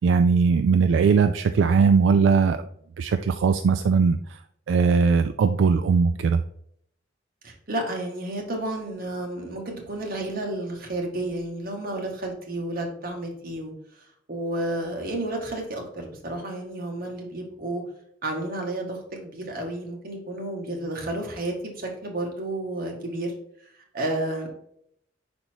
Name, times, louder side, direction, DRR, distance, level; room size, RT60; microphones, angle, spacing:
voice 1, 0.0-2.6 3.0-4.2 4.7-6.4, right 5 dB, 75° right, 8 dB, 0.3 m, -19 dB
voice 2, 7.4-17.8 18.2-23.3 23.9-24.5, right 1 dB, 50° right, 1 dB, 1.6 m, -31 dB
5.4 x 4.2 x 4.5 m, 0.70 s
head